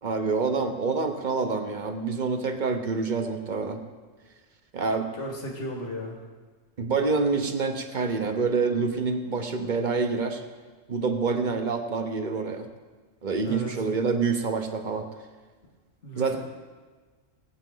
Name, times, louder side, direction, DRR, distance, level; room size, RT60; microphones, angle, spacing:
voice 1, 0.0-3.8 4.7-5.1 6.8-10.4 10.9-12.7 13.2-15.0 16.2-16.4, right 4 dB, 40° right, 6 dB, 0.9 m, -27 dB
voice 2, 5.2-6.2 13.4-13.7 16.0-16.4, equal, 65° left, 0 dB, 2.0 m, -35 dB
17.5 x 8.5 x 3.9 m, 1.4 s
omnidirectional pair, 1.3 m